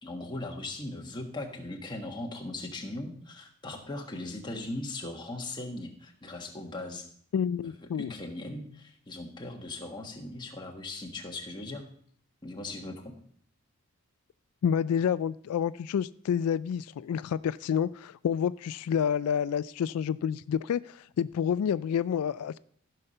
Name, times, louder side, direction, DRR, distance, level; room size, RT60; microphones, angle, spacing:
voice 1, 0.0-7.1 7.9-11.9 12.4-13.1, left 2 dB, 20° left, 1.4 m, -39 dB
voice 2, 7.3-8.1 14.6-22.6, left 8 dB, 90° left, 0.3 m, -29 dB
14.5 x 5.7 x 5.4 m
head